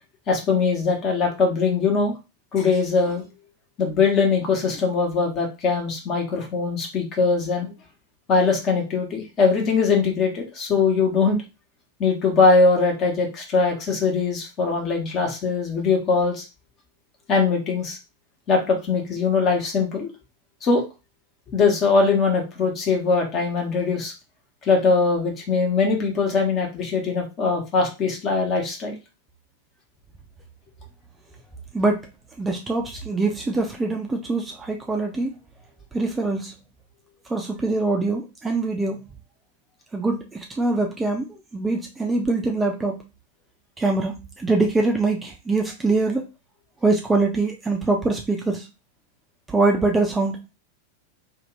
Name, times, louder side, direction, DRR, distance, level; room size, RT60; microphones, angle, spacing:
voice 1, 0.3-2.1 2.5-3.2 3.8-7.7 8.3-11.4 12.0-16.4 17.3-18.0 18.5-20.1 20.6-20.8 21.5-24.1 24.6-28.9, left 4 dB, 35° left, 1 dB, 1.1 m, -21 dB
voice 2, 32.4-35.3 35.9-36.5 37.3-39.0 39.9-43.0 43.8-46.2 46.8-48.7 49.5-50.4, right 3 dB, 10° right, 1 dB, 0.5 m, -23 dB
2.7 x 2.4 x 3.1 m, 0.28 s
figure-of-eight pair, 90°, 0 cm